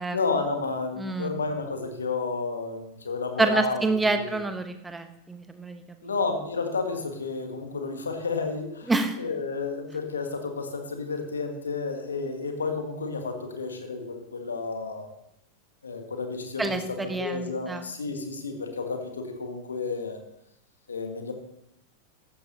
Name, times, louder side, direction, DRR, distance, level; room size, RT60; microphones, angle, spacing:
voice 1, 0.1-3.8 4.1-4.4 6.0-8.9 9.2-15.1 15.8-20.2 20.9-21.3, left 4 dB, 70° left, 5 dB, 1.7 m, -31 dB
voice 2, 1.0-1.3 3.4-5.8 8.9-9.2 16.6-17.8, right 3 dB, 10° right, 8 dB, 1.0 m, -27 dB
15.0 x 11.5 x 2.8 m, 0.80 s
figure-of-eight pair, 90°, 0 cm